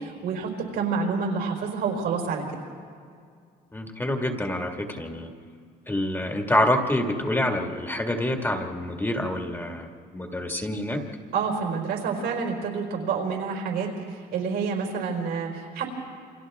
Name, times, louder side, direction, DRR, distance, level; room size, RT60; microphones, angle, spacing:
voice 1, 0.0-2.4 11.3-15.9, right 5 dB, 80° right, 1 dB, 4.7 m, -28 dB
voice 2, 3.7-5.3 5.9-9.9 10.1-11.0, left 1 dB, 15° left, 2 dB, 1.9 m, -26 dB
28.0 x 26.0 x 3.6 m, 2.2 s
cardioid pair, 110°, 17 cm